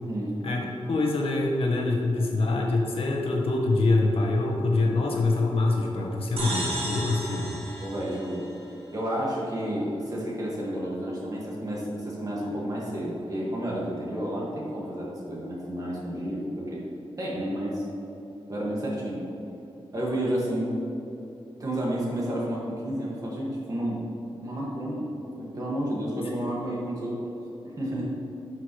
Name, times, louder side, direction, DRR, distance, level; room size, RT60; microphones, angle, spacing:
voice 1, 0.9-7.5, left 2 dB, 75° left, -1 dB, 1.2 m, -25 dB
sound 1, 6.4-9.0, right 1 dB, 75° right, 1.7 m, -34 dB
voice 2, 7.8-8.5 8.9-16.8 17.2-17.9 18.5-19.3 19.9-20.8 21.6-24.0 24.4-25.1 25.4-27.4 27.6-28.1, right 1 dB, 40° right, -5 dB, 1.9 m, -31 dB
11.5 x 5.9 x 3.2 m, 2.8 s
wide cardioid pair, 160°, 10 cm